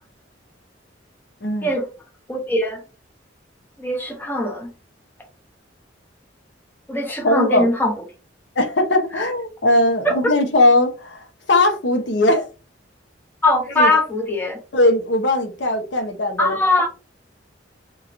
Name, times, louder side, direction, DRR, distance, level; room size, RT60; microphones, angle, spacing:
voice 1, 1.4-1.8 7.2-7.7 8.6-12.5 13.8-13.9 14.7-16.6, left 1 dB, 65° left, 0.7 m, -19 dB
voice 2, 2.3-2.8 3.8-4.7 6.9-7.9 13.4-14.6 16.4-16.9, left 2 dB, 10° left, 0.7 m, -21 dB
3.0 x 2.9 x 2.4 m
head